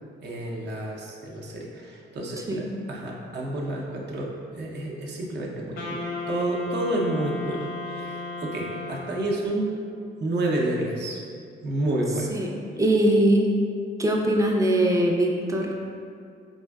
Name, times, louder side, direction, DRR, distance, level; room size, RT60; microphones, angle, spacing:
voice 1, 0.2-9.8 10.2-11.2 11.6-12.3, right 1 dB, 60° right, -2 dB, 0.6 m, -30 dB
Wind instrument woodwind instrument, 5.8-9.6, left 3 dB, 80° left, 0.7 m, -35 dB
voice 2, 12.8-13.5 14.0-15.7, right 1 dB, 15° right, 0 dB, 0.4 m, -21 dB
4.3 x 2.5 x 2.3 m, 2.3 s
cardioid pair, 90°, 20 cm